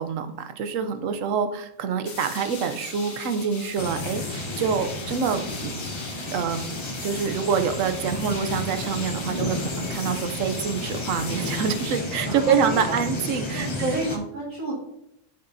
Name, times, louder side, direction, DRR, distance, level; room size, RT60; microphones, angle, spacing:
voice 1, 0.0-5.7 6.3-6.7 7.0-14.0, right 6 dB, 70° right, 8 dB, 1.0 m, -26 dB
sound 1, 2.1-12.0, left 3 dB, 70° left, 1.8 m, -40 dB
sound 2, 3.8-14.2, left 2 dB, 25° left, 0.6 m, -32 dB
voice 2, 12.2-12.9 13.5-13.6 13.9-14.7, right 1 dB, 85° right, -4 dB, 2.4 m, -31 dB
8.1 x 6.7 x 2.7 m, 0.77 s
omnidirectional pair, 1.5 m